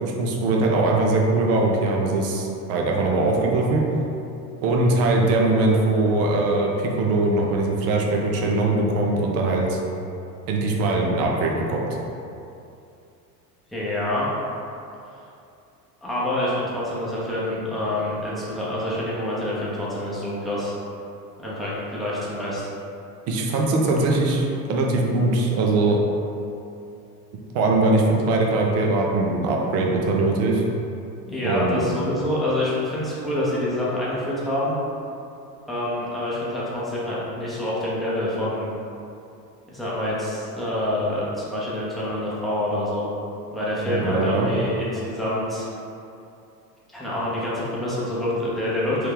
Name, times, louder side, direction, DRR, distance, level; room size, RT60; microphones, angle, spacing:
voice 1, 0.0-3.8 4.6-9.8 10.5-11.9 23.3-26.0 27.5-30.6 31.4-31.8 43.9-44.5, right 2 dB, 30° right, -1 dB, 0.6 m, -21 dB
voice 2, 13.7-14.3 16.0-20.7 21.4-22.7 31.3-34.7 35.7-38.7 39.7-43.1 43.5-45.7 46.9-49.1, left 1 dB, ahead, -9 dB, 0.8 m, -26 dB
3.2 x 3.0 x 3.5 m, 2.6 s
figure-of-eight pair, 75°, 50 cm